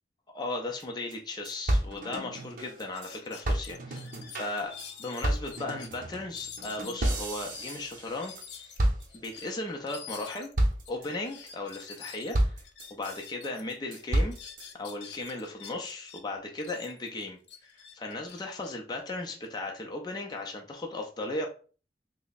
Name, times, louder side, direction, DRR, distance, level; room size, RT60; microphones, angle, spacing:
voice 1, 0.3-4.0 4.3-8.3 9.2-10.5 10.9-12.6 12.9-14.4 14.7-21.5, left 2 dB, 25° left, 1 dB, 0.4 m, -36 dB
sound 1, 0.8-0.9 1.1-1.2 1.4-3.1 3.4-8.5 8.8-9.5 9.9-10.2 10.6-11.1 11.5-12.0 12.3-13.3 13.7-14.7, right 1 dB, 50° right, 0.7 m, -31 dB
sound 2, 2.0-2.1 2.4-2.5 2.9-5.9 6.3-13.6 13.9-16.2 16.6-19.5, left 7 dB, 70° left, 0.6 m, -47 dB
3.3 x 2.0 x 4.0 m, 0.39 s
head